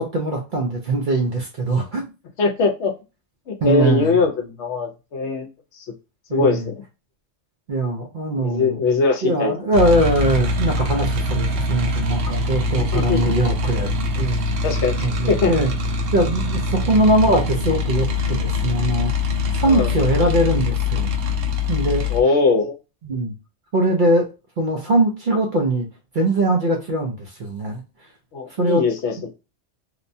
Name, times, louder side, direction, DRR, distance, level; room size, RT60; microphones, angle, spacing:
voice 1, 0.0-2.0 3.6-4.2 6.3-6.6 7.7-8.8 9.2-13.9 14.2-14.5 15.0-15.7 16.1-19.1 19.5-21.1 21.7-22.0 23.0-23.3 23.7-24.3 24.6-25.9 26.1-27.8 28.6-28.8, right 1 dB, 55° right, 1 dB, 0.6 m, -21 dB
voice 2, 2.4-2.9 3.5-5.5 5.7-5.9 6.3-6.7 8.4-9.5 12.8-13.3 14.6-15.5 19.7-19.9 22.1-22.7 28.3-29.3, left 4 dB, 70° left, 4 dB, 0.9 m, -21 dB
sound 1, 9.7-22.2, left 3 dB, 80° right, 0.9 m, -23 dB
2.9 x 2.1 x 2.6 m, 0.29 s
omnidirectional pair, 1.3 m